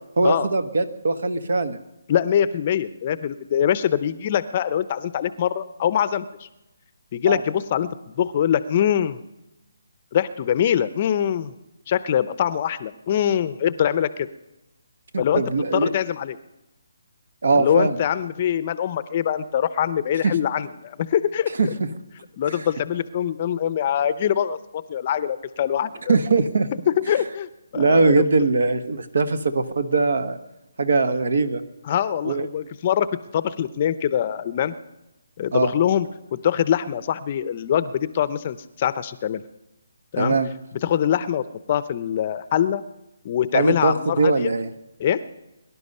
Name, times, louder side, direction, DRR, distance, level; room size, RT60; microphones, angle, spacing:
voice 1, 0.2-1.8 7.3-7.4 15.1-15.9 17.4-18.0 20.2-20.3 21.6-21.9 22.5-22.6 26.1-26.7 27.7-30.4 30.8-31.6 32.2-32.5 35.5-35.7 40.2-40.5 43.5-44.7, right 3 dB, 70° right, 11 dB, 1.4 m, -21 dB
voice 2, 2.1-6.5 7.1-9.2 10.1-11.5 11.9-14.3 15.2-15.4 15.7-16.4 17.5-21.7 22.4-26.1 27.0-28.3 31.9-33.1 33.3-34.7 35.4-39.4 40.1-40.4 40.8-42.8 43.2-44.5 45.0-45.2, left 9 dB, 35° left, 15 dB, 0.6 m, -23 dB
23.0 x 11.5 x 5.5 m, 0.97 s
hypercardioid pair, 160°, 0 cm